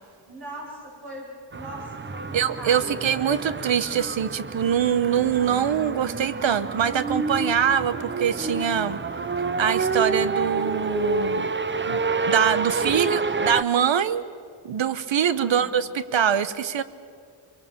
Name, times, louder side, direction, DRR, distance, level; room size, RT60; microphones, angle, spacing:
voice 1, 0.3-3.0 12.6-13.4 15.3-15.7, right 1 dB, 55° right, -4 dB, 7.9 m, -40 dB
sound 1, 1.5-13.6, right 4 dB, 25° right, 0.7 m, -28 dB
voice 2, 2.3-9.0 9.6-11.5 11.8-12.0 12.2-14.2 14.6-16.8, right 8 dB, 70° right, 14 dB, 1.1 m, -23 dB
25.5 x 23.0 x 7.3 m, 2.3 s
wide cardioid pair, 125°, 46 cm